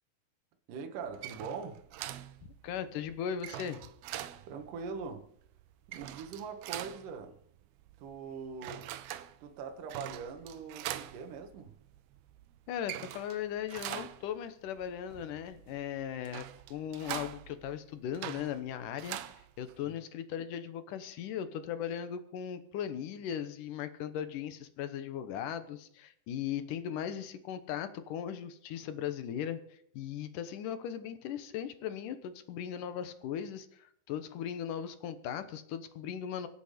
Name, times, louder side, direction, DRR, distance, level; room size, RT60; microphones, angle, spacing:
voice 1, 0.7-1.8 4.5-5.3 5.9-7.4 8.0-8.9 9.4-11.7 19.8-20.0, right 5 dB, 65° right, 5 dB, 2.9 m, -42 dB
sound 1, 1.0-20.0, right 13 dB, 80° right, 2.7 m, -45 dB
voice 2, 2.6-3.8 12.7-16.4 16.7-19.2 19.6-36.5, left 9 dB, 70° left, 11 dB, 2.3 m, -38 dB
24.5 x 8.4 x 5.1 m, 0.64 s
omnidirectional pair, 4.5 m